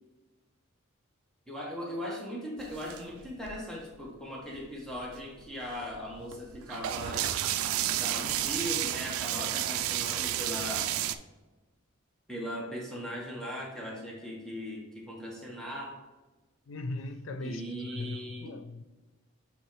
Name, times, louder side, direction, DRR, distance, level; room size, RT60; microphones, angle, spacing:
voice 1, 1.5-7.3 7.8-11.2 12.3-16.0 17.4-18.6, equal, 5° left, 1.2 m, -39 dB
sound 1, 2.6-3.9 4.6-4.7 4.9-11.2, right 12 dB, 90° right, 0.4 m, -31 dB
voice 2, 16.7-18.8, left 2 dB, 70° left, 0.5 m, -39 dB
8.1 x 4.2 x 3.1 m
head